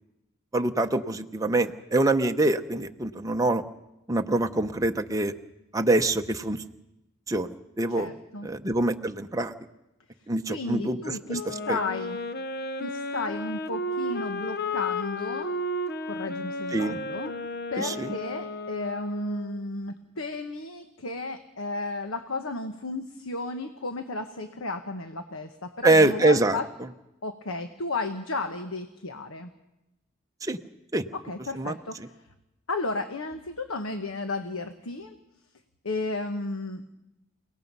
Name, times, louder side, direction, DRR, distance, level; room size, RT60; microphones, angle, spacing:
voice 1, 0.5-3.6 4.1-5.3 5.7-6.6 7.3-8.1 8.4-9.5 10.3-11.8 16.7-17.0 17.8-18.2 25.8-26.6 30.4-30.6 30.9-31.0 31.5-31.8, right 2 dB, 15° right, 5 dB, 0.8 m, -25 dB
voice 2, 7.9-8.5 10.5-12.2 12.8-15.6 16.1-17.3 17.7-26.7 27.2-29.5 31.1-32.2 32.7-35.2 35.8-36.8, left 2 dB, 85° left, 7 dB, 1.2 m, -33 dB
Wind instrument woodwind instrument, 11.3-19.6, left 1 dB, 50° left, 0.9 m, -33 dB
28.5 x 18.0 x 5.5 m, 0.92 s
head